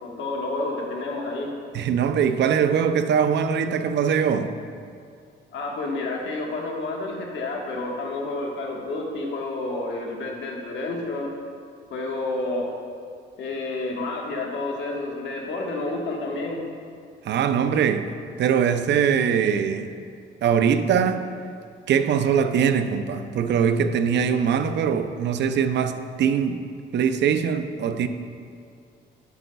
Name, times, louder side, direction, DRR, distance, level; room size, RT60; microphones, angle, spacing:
voice 1, 0.0-1.5 5.5-11.3 11.9-12.7 13.4-16.6, left 2 dB, 70° left, 1.4 m, -30 dB
voice 2, 1.7-4.5 17.2-18.1 18.4-19.9 20.4-21.3 21.9-26.6 26.9-28.1, right 7 dB, 65° right, 0.5 m, -22 dB
10.0 x 8.1 x 2.3 m
cardioid pair, 90°, 20 cm